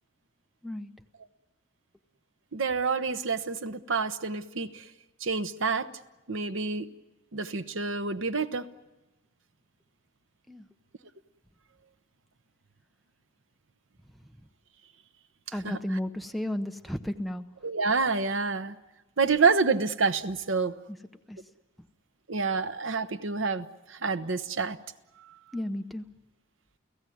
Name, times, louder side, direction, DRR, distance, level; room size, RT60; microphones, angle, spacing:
voice 1, 2.5-4.8 5.2-5.9 6.3-6.9 7.3-8.7 15.6-15.8 17.6-18.8 19.2-20.8 22.3-24.8 25.2-25.3, right 4 dB, 75° right, 10 dB, 1.0 m, -28 dB
voice 2, 15.5-17.4 21.3-21.4 25.5-26.0, left 1 dB, ahead, 5 dB, 0.8 m, -33 dB
29.5 x 17.0 x 9.3 m, 1.1 s
head